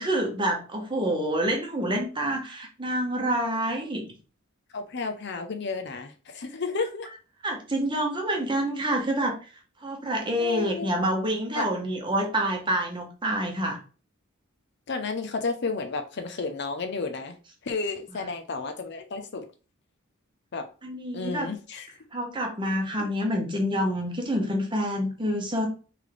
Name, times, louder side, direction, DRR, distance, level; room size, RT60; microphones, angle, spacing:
voice 1, 0.0-4.0 7.4-9.4 9.8-13.8 18.1-18.2 20.8-21.5 22.1-25.7, equal, 25° right, 2 dB, 0.9 m, -27 dB
voice 2, 4.7-7.1 10.4-10.9 11.5-11.7 14.9-17.4 17.6-19.4 20.5-20.7 21.1-21.9, left 4 dB, 55° left, 6 dB, 0.6 m, -32 dB
3.4 x 3.2 x 3.8 m, 0.35 s
head